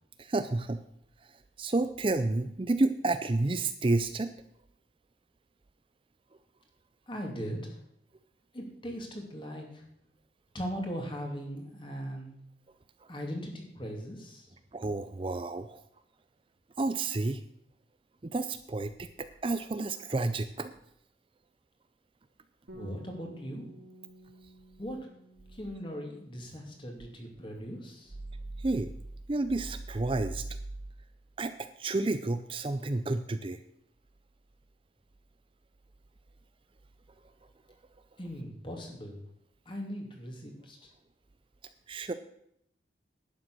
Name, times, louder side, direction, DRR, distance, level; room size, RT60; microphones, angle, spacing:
voice 1, 0.2-0.8 1.2-1.3 1.6-4.3 14.7-15.8 16.8-17.4 18.2-20.7 28.6-28.9 29.3-30.5 31.4-33.6 41.9-42.1, right 2 dB, 30° right, 11 dB, 0.5 m, -30 dB
voice 2, 7.1-7.8 8.5-9.8 10.5-12.3 13.1-14.5 22.7-23.7 24.8-25.0 25.5-28.1 38.2-39.2 39.7-40.8, equal, 30° left, 2 dB, 2.6 m, -39 dB
Bass guitar, 22.7-27.4 27.6-28.9, right 1 dB, 80° right, 3.5 m, -54 dB
11.5 x 9.3 x 6.2 m, 0.73 s
head